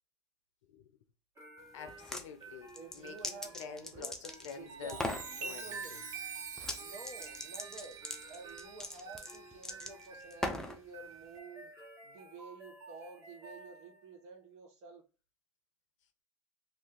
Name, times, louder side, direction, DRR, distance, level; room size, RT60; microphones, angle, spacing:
sound 1, 1.4-14.2, right 3 dB, 20° right, 1.3 m, -54 dB
voice 1, 1.7-6.0, left 7 dB, 85° left, 0.6 m, -48 dB
sound 2, 1.9-2.3 2.7-4.6 4.9-5.3 6.6-6.8 7.0-10.8, left 1 dB, 5° left, 0.4 m, -39 dB
voice 2, 2.7-6.0 6.6-8.0 8.3-11.7 12.0-15.0, right 4 dB, 45° right, 0.9 m, -51 dB
Chime, 4.6-10.5 11.1-11.4, right 5 dB, 80° right, 0.7 m, -46 dB
2.6 x 2.4 x 3.6 m
hypercardioid pair, 105°, 15 cm